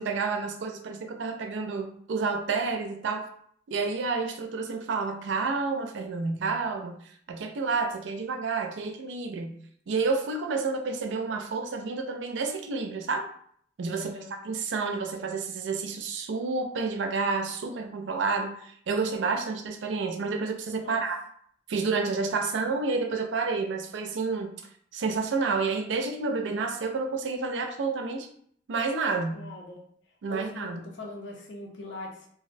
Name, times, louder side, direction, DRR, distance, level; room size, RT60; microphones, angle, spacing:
voice 1, 0.0-3.3 3.7-7.0 7.3-9.6 9.9-13.3 13.8-14.1 14.4-21.2 21.7-24.5 24.9-28.3 28.7-29.4 30.2-30.8, right 4 dB, 70° right, 5 dB, 0.4 m, -29 dB
voice 2, 13.9-14.4 20.8-21.0 29.3-29.8 30.3-32.3, left 2 dB, 75° left, 0 dB, 0.6 m, -41 dB
2.3 x 2.1 x 2.5 m, 0.63 s
head